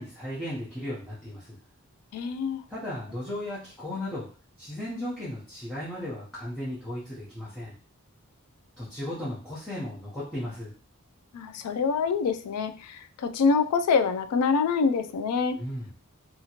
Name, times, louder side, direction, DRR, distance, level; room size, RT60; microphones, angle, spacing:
voice 1, 0.0-1.6 2.7-4.3 4.6-7.7 8.8-10.7 15.5-15.9, left 1 dB, 5° left, -10 dB, 0.7 m, -35 dB
voice 2, 2.1-2.6 11.3-15.6, left 5 dB, 90° left, 10 dB, 0.3 m, -25 dB
2.8 x 2.4 x 2.8 m, 0.41 s
head